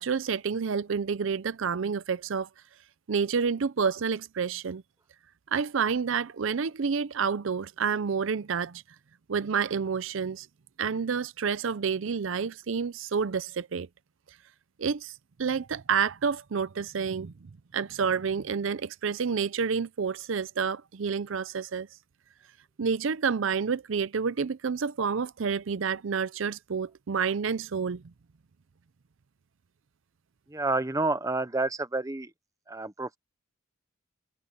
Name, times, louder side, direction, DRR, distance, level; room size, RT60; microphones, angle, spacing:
voice 1, 0.0-2.5 3.1-4.8 5.5-8.8 9.3-10.5 10.8-13.9 14.8-15.1 15.4-17.3 17.7-21.9 22.8-28.0, right 6 dB, 65° right, 0.5 m, -29 dB
voice 2, 30.5-32.3 32.7-33.2, right 2 dB, 15° right, 0.8 m, -29 dB
head